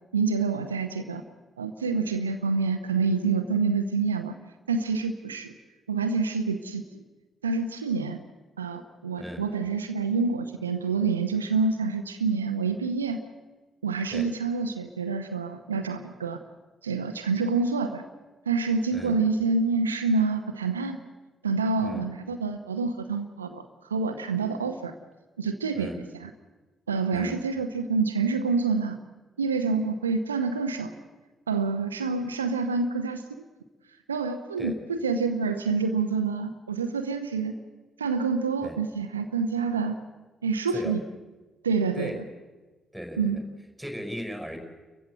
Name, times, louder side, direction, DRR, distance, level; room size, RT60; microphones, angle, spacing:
voice 1, 0.1-1.2 1.6-4.3 4.7-5.5 5.9-6.8 7.4-8.2 8.6-13.2 13.8-16.4 16.8-18.0 18.5-21.0 21.4-23.6 23.9-24.9 25.4-25.9 26.9-29.0 29.4-30.9 31.5-33.4 34.1-37.5 38.0-40.0 40.4-41.0 41.6-42.1 43.2-43.4, right 4 dB, 85° right, 7 dB, 0.8 m, -27 dB
voice 2, 25.7-26.0 27.1-27.4 34.6-34.8 38.6-38.8 40.7-41.0 41.9-42.2 42.9-43.4 43.8-44.6, equal, ahead, 4 dB, 5.6 m, -37 dB
30.0 x 15.0 x 7.8 m, 1.2 s
figure-of-eight pair, 40°, 0 cm